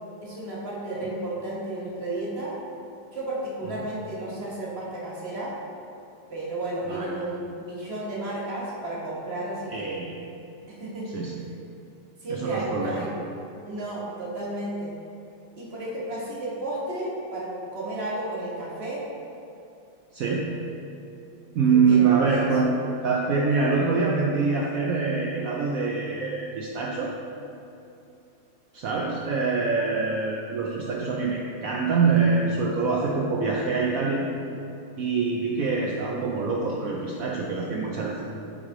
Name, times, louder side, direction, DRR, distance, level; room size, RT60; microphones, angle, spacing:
voice 1, 0.2-2.5 3.1-5.5 6.3-10.0 10.7-11.1 12.2-13.2 13.6-14.9 15.6-19.0 21.7-22.5, right 1 dB, 40° right, -6 dB, 1.2 m, -32 dB
voice 2, 6.9-7.3 9.7-10.1 11.1-11.4 12.3-13.1 20.1-20.5 21.5-22.7 23.0-27.1 28.7-34.3 35.0-38.3, right 4 dB, 85° right, -2 dB, 0.7 m, -25 dB
9.0 x 3.2 x 3.7 m, 2.7 s
omnidirectional pair, 2.0 m